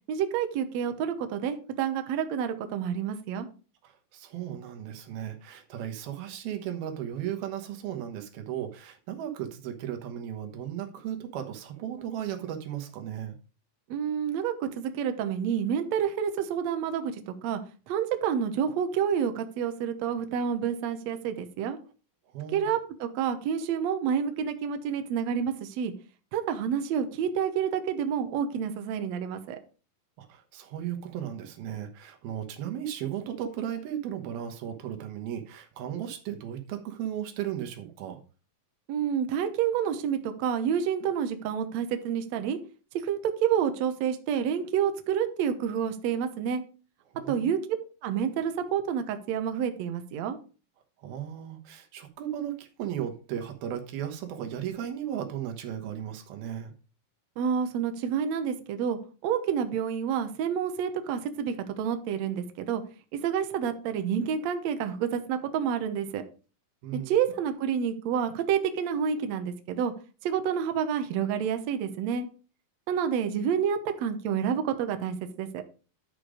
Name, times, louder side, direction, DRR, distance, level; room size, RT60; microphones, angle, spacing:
voice 1, 0.1-3.5 13.9-17.6 17.9-21.8 22.5-25.9 26.3-29.6 38.9-42.6 43.0-46.6 47.3-47.6 48.0-50.4 57.4-62.8 63.1-66.2 66.9-69.9 70.2-72.3 72.9-75.6, right 8 dB, 70° right, 8 dB, 1.7 m, -29 dB
voice 2, 3.8-13.4 22.3-22.7 30.2-38.2 47.1-47.5 51.0-56.7 66.8-67.2, right 10 dB, 85° right, 6 dB, 3.2 m, -36 dB
11.0 x 5.2 x 4.9 m, 0.35 s
omnidirectional pair, 4.2 m